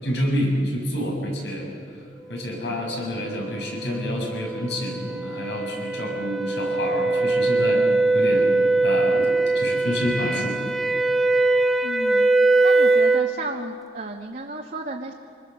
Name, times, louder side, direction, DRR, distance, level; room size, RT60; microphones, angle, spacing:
voice 1, 0.0-2.0 2.3-7.9 8.1-8.5 8.8-10.6, left 1 dB, 75° left, 0 dB, 6.5 m, -28 dB
sound 1, 3.4-13.4, right 2 dB, ahead, 1.0 m, -21 dB
voice 2, 11.8-12.3 12.6-15.1, right 2 dB, 50° right, 0 dB, 1.5 m, -33 dB
26.0 x 21.5 x 7.0 m, 2.2 s
head